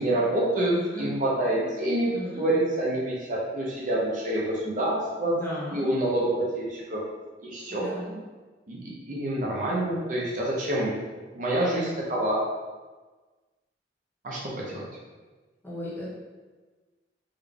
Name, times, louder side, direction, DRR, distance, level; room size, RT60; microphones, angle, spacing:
voice 1, 0.0-5.3 5.7-7.0 7.4-7.9 8.7-11.0 11.3-12.4 14.2-14.4 14.7-14.9, right 1 dB, 45° right, -4 dB, 0.6 m, -27 dB
voice 2, 0.7-1.1 2.1-2.4 5.3-5.8 7.7-8.1 15.6-16.1, equal, 10° left, -7 dB, 0.9 m, -35 dB
3.7 x 2.2 x 3.4 m, 1.3 s
head